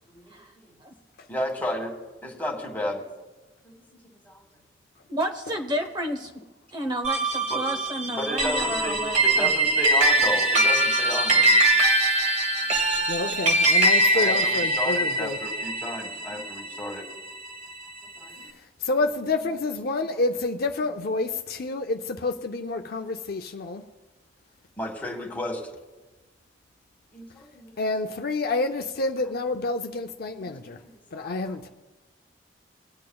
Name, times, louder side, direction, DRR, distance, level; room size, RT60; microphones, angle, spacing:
voice 1, 1.3-1.9 2.2-3.0 3.6-3.7 4.2-4.4 7.5-7.6 8.0-11.6 12.8-13.0 14.1-17.0 18.2-18.3 24.8-25.6 27.1-27.7 30.4-31.3, left 1 dB, 10° left, 1.6 m, -33 dB
voice 2, 5.1-6.3 6.7-9.5, equal, 25° right, 0.9 m, -31 dB
sound 1, 7.0-17.7, right 1 dB, 40° right, 1.3 m, -22 dB
voice 3, 13.1-15.4 18.8-23.8 27.8-30.8 31.1-31.7, left 3 dB, 55° left, 0.6 m, -28 dB
21.5 x 8.5 x 2.3 m
head